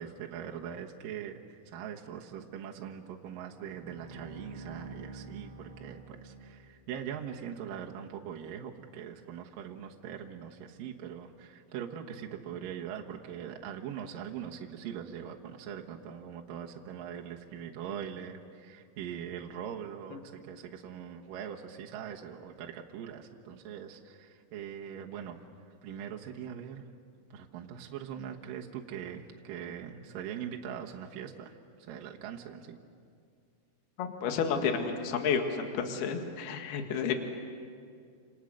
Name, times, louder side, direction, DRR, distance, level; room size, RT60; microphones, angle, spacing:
voice 1, 0.0-25.4 25.8-26.8 27.3-31.5 31.9-32.8, right 8 dB, 70° right, 1 dB, 2.1 m, -42 dB
Bowed string instrument, 3.5-7.0, right 3 dB, 25° right, 1.4 m, -48 dB
voice 2, 34.0-37.2, left 6 dB, 60° left, 5 dB, 3.3 m, -31 dB
29.0 x 27.5 x 6.5 m, 2.3 s
omnidirectional pair, 5.9 m